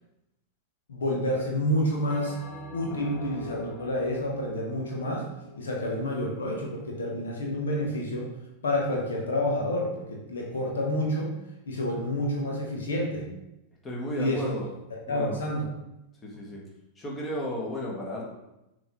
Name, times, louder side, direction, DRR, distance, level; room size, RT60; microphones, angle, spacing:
voice 1, 0.9-2.4 2.7-5.2 5.6-8.3 8.6-11.3 11.7-13.3 14.1-14.5 15.1-15.7, left 1 dB, 70° left, -1 dB, 1.2 m, -29 dB
Bell, 2.1-6.7, left 3 dB, 40° left, 0.8 m, -44 dB
voice 2, 13.8-14.7 15.1-15.4 16.2-16.7 17.0-18.2, equal, 20° left, -3 dB, 1.6 m, -34 dB
6.8 x 3.7 x 3.7 m, 0.91 s
figure-of-eight pair, 95°, 0 cm